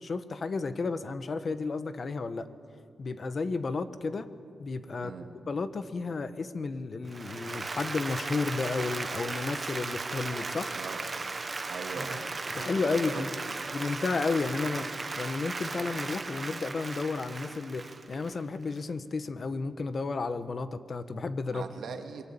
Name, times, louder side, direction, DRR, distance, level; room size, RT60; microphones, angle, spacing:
voice 1, 0.0-2.5 3.0-4.3 4.6-5.1 5.5-10.7 12.0-12.2 12.5-13.5 13.7-21.6, left 4 dB, 40° left, 11 dB, 1.3 m, -32 dB
Applause, 7.1-18.8, right 3 dB, 30° right, 1.2 m, -36 dB
voice 2, 11.7-13.3 21.5-22.2, right 6 dB, 85° right, 3 dB, 2.4 m, -41 dB
27.0 x 23.5 x 8.6 m, 2.3 s
wide cardioid pair, 135°, 0 cm